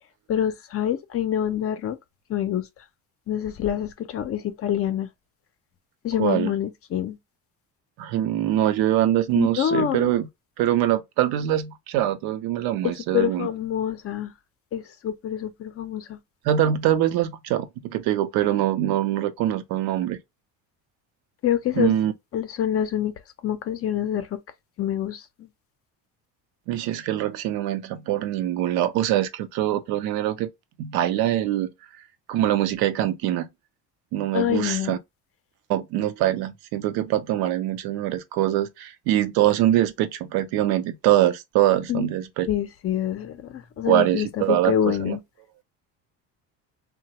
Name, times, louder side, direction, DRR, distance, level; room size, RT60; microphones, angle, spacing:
voice 1, 0.3-2.0 2.3-2.6 3.3-5.1 6.0-7.2 9.3-10.1 12.8-14.3 14.7-16.2 21.4-21.9 22.3-23.1 23.4-24.4 24.8-25.2 34.3-35.0 41.9-42.1 42.5-45.2, left 10 dB, 40° left, 0.5 m, -26 dB
voice 2, 6.2-6.5 8.0-10.3 10.6-13.5 16.4-20.2 21.8-22.1 26.7-30.5 30.8-31.7 32.3-33.5 34.1-35.0 35.7-42.5 43.9-45.2, right 12 dB, 75° right, 0.7 m, -23 dB
2.9 x 2.2 x 2.8 m
cardioid pair, 110°, 37 cm